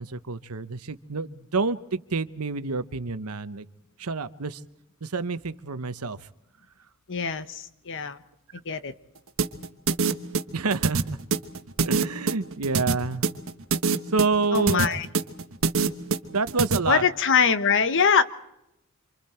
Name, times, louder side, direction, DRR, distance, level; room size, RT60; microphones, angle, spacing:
voice 1, 0.0-3.7 4.0-4.6 5.0-6.2 10.5-11.2 11.8-13.2 14.1-15.0 16.3-17.0, right 4 dB, 85° right, 1.0 m, -28 dB
voice 2, 7.1-8.2 8.6-8.9 14.5-15.1 16.9-18.2, left 6 dB, 60° left, 1.1 m, -23 dB
sound 1, 9.4-16.8, right 4 dB, 65° right, 1.2 m, -25 dB
28.0 x 26.0 x 4.4 m
head